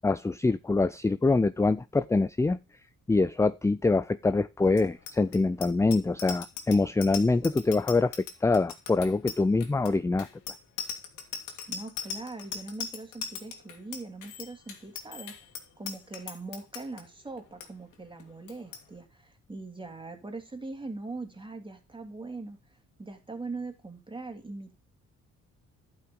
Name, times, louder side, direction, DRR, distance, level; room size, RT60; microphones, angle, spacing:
voice 1, 0.0-2.6 3.1-10.3, left 3 dB, 10° left, 15 dB, 0.4 m, -25 dB
Bicycle bell, 4.7-17.0 17.4-17.7 17.9-18.2 18.5-18.8, left 7 dB, 85° left, 2.3 m, -39 dB
voice 2, 11.7-15.4 15.8-22.6 23.0-24.8, right 3 dB, 15° right, 5 dB, 2.9 m, -41 dB
11.5 x 5.8 x 5.4 m, 0.28 s
cardioid pair, 90°, 30 cm